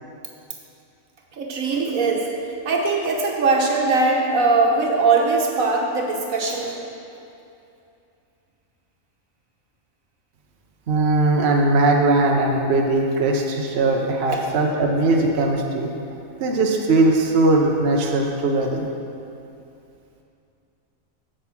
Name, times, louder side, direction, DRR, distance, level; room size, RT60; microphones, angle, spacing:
voice 1, 1.3-2.3 2.6-6.8 14.3-14.5, right 3 dB, 80° right, 0 dB, 1.6 m, -21 dB
voice 2, 10.9-15.9 16.4-18.9, right 2 dB, 55° right, 0 dB, 1.0 m, -19 dB
8.2 x 7.9 x 5.9 m, 2.6 s
omnidirectional pair, 1.4 m